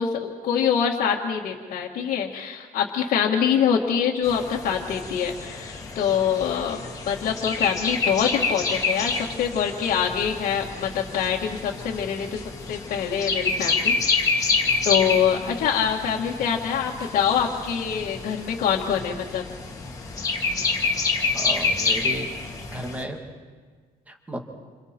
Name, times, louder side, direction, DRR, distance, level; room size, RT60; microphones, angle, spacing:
voice 1, 0.0-14.3 14.9-19.4, left 8 dB, 60° left, -5 dB, 1.9 m, -25 dB
sound 1, 4.2-23.0, left 4 dB, 20° left, 2.1 m, -28 dB
voice 2, 21.3-22.3 22.7-23.2 24.1-24.4, right 1 dB, 10° right, 3 dB, 1.9 m, -33 dB
28.5 x 27.5 x 4.5 m, 1.5 s
cardioid pair, 175°, 16 cm